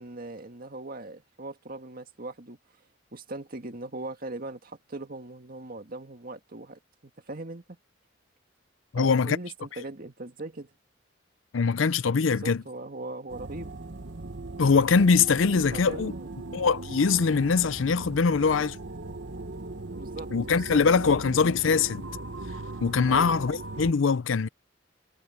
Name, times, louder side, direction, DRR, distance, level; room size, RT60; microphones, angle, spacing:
voice 1, 0.0-2.6 3.1-7.8 9.0-10.7 12.2-13.7 15.5-16.3 19.9-21.6 23.1-23.4, right 2 dB, 50° right, 1.8 m, -40 dB
voice 2, 8.9-9.4 11.5-12.6 14.6-16.1 16.5-18.8 20.3-22.1 22.8-24.5, left 5 dB, 80° left, 0.6 m, -23 dB
sound 1, 13.3-23.9, right 2 dB, 65° right, 1.2 m, -39 dB
head